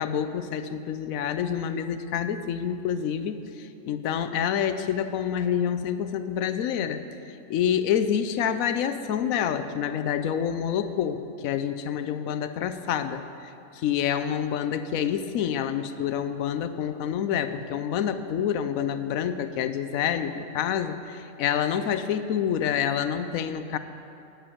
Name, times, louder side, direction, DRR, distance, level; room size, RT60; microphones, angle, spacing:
voice 1, 0.0-7.0 7.5-23.8, left 8 dB, 90° left, 11 dB, 1.0 m, -27 dB
7.9 x 7.5 x 8.3 m, 2.6 s
omnidirectional pair, 1.4 m